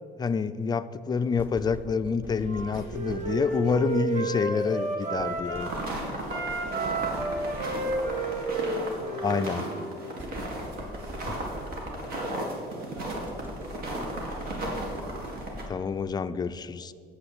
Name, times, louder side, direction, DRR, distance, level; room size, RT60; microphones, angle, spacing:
voice 1, 0.2-5.7 9.2-9.6 15.7-16.9, left 5 dB, 25° left, 12 dB, 0.4 m, -28 dB
sound 1, 1.4-3.8 5.2-8.8 10.2-12.4 13.0-16.0, equal, 10° right, 0.8 m, -43 dB
Wind instrument woodwind instrument, 2.4-5.8 6.2-9.9, right 3 dB, 45° right, 1.7 m, -31 dB
voice 2, 2.7-3.8 4.4-4.7 6.2-9.5 10.2-15.6, right 2 dB, 80° right, 1 dB, 2.0 m, -46 dB
sound 2, 5.6-15.6, right 1 dB, 65° right, 2.1 m, -35 dB
7.3 x 6.7 x 7.9 m, 2.3 s
cardioid pair, 110°, 17 cm